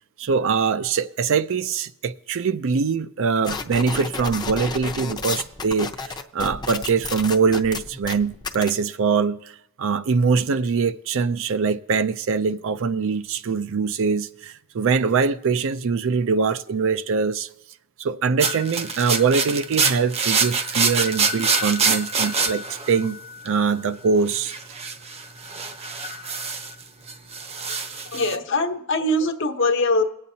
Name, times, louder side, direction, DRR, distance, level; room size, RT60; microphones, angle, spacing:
voice 1, 0.2-9.4 9.8-17.5 18.0-23.2 23.4-24.5, right 5 dB, 65° right, 0.5 m, -23 dB
sound 1, 3.4-8.7, left 4 dB, 20° left, 0.7 m, -31 dB
sound 2, 18.4-23.6 24.3-26.8 27.1-28.4, right 4 dB, 30° right, 0.7 m, -25 dB
voice 2, 28.1-30.0, left 2 dB, 60° left, 1.0 m, -22 dB
23.5 x 8.8 x 2.8 m
head